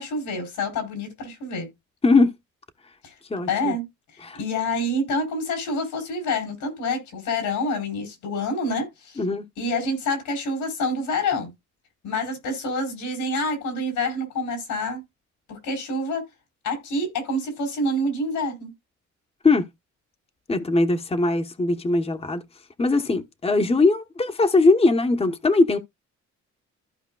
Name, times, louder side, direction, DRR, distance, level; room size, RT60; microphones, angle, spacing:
voice 1, 0.0-1.7 3.0-3.1 3.5-3.8 4.4-9.2 9.6-11.5 12.0-15.0 15.5-16.3 16.6-18.7, left 1 dB, 85° left, 4.2 m, -27 dB
voice 2, 3.3-3.7 4.2-4.4 9.2-9.4 19.4-19.7 20.5-22.4 22.8-25.8, left 3 dB, 20° left, 1.0 m, -20 dB
14.5 x 4.8 x 2.3 m
cardioid pair, 90°, 30 cm